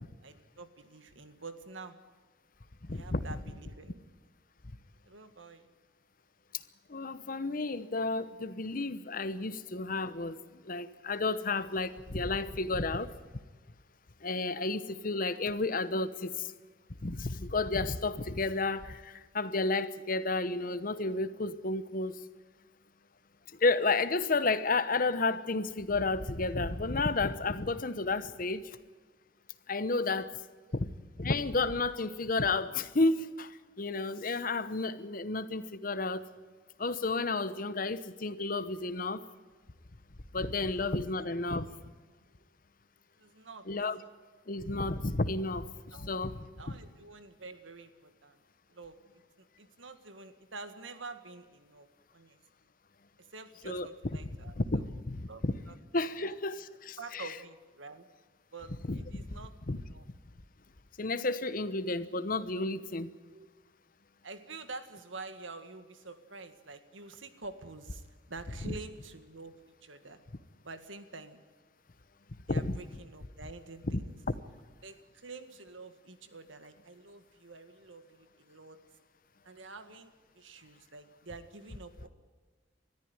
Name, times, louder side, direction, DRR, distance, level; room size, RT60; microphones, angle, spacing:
voice 1, 0.2-2.0 2.9-4.1 5.1-5.7 9.5-9.7 30.7-30.8 40.7-40.8 43.2-43.7 45.9-46.2 46.6-48.4 48.7-51.9 52.1-52.4 53.2-54.8 55.3-55.8 56.1-56.3 57.0-58.1 58.5-59.5 59.9-60.1 63.3-63.5 64.2-70.2 70.6-71.4 72.5-74.2 74.8-78.8 79.4-82.1, right 3 dB, 90° right, 9 dB, 1.8 m, -48 dB
voice 2, 2.8-3.2 6.9-13.1 14.2-16.5 17.0-22.2 23.6-28.8 29.7-30.3 30.7-30.9 31.2-36.3 36.8-39.2 40.3-41.7 43.7-44.0 44.5-45.7 46.0-46.8 53.6-53.9 54.6-55.5 55.9-57.3 58.9-59.4 59.7-59.8 61.0-63.1 68.7-68.8 72.5-72.8 73.9-74.0, left 3 dB, 45° left, 13 dB, 1.0 m, -32 dB
21.5 x 14.0 x 9.7 m, 1.5 s
head